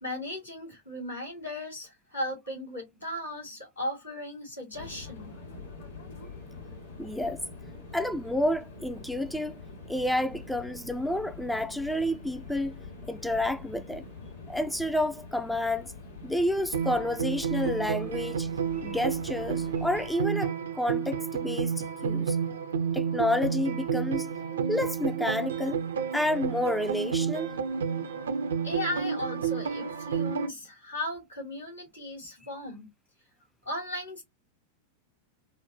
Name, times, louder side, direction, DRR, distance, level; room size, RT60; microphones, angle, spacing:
voice 1, 0.0-5.3 28.6-32.9 33.6-34.2, left 1 dB, 80° left, 2.3 m, -36 dB
sound 1, 4.7-20.2, left 3 dB, 65° left, 2.1 m, -45 dB
voice 2, 7.0-7.4 7.9-9.5 9.9-12.8 13.1-14.0 14.5-15.9 16.2-18.5 18.8-21.7 22.0-22.4 22.9-24.3 24.7-25.8 26.1-27.5, left 1 dB, 5° left, 0.3 m, -29 dB
sound 2, 16.7-30.5, right 7 dB, 65° right, 0.4 m, -31 dB
4.4 x 2.0 x 2.6 m
figure-of-eight pair, 90°, 0 cm